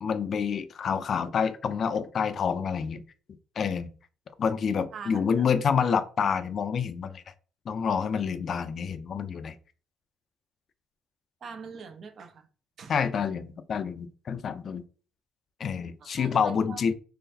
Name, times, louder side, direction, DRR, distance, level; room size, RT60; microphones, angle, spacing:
voice 1, 0.0-3.0 3.6-3.9 4.4-7.2 7.7-9.6 12.9-14.8 15.6-16.9, left 6 dB, 45° left, 0.4 m, -28 dB
voice 2, 4.9-5.5 11.4-12.5 12.8-13.0 16.0-16.8, right 5 dB, 45° right, 0.7 m, -43 dB
3.8 x 3.2 x 2.7 m
cardioid pair, 130°, 0 cm